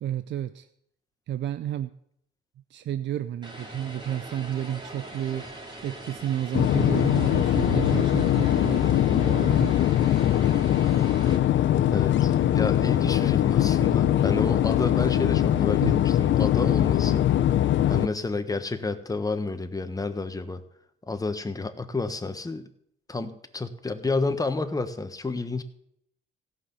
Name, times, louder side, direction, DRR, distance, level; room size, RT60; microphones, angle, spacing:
voice 1, 0.0-0.7 1.3-1.9 2.7-5.5 5.8-9.7 15.8-16.0, right 11 dB, 65° right, 12 dB, 0.6 m, -31 dB
Vehicle, 3.4-11.4, right 1 dB, 20° right, 3.1 m, -41 dB
sound 1, 6.5-18.1, left 12 dB, 70° left, 0.7 m, -22 dB
voice 2, 11.9-17.3 17.9-20.6 21.1-22.7 23.1-25.6, left 3 dB, 15° left, 8 dB, 1.3 m, -30 dB
16.5 x 5.8 x 7.0 m, 0.71 s
cardioid pair, 90°, 20 cm